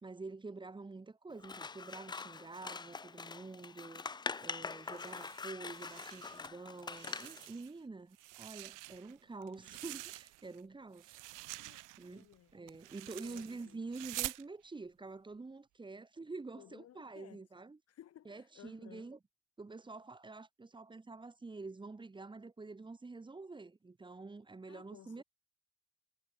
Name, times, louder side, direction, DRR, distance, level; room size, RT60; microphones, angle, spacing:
voice 1, 0.0-4.0 4.4-11.2 12.0-12.3 12.5-17.8 18.3-19.2 19.6-25.2, right 3 dB, 15° right, 2.1 m, -47 dB
Scissors, 1.4-7.5, left 4 dB, 15° left, 0.5 m, -44 dB
sound 1, 4.8-6.5 6.8-7.8 8.1-10.6 10.9-14.4, right 19 dB, 65° right, 0.5 m, -47 dB
voice 2, 11.6-12.6 13.2-13.8 16.6-17.4 17.9-19.1 24.7-25.2, left 11 dB, 45° left, 1.5 m, -58 dB
cardioid pair, 165°, 35 cm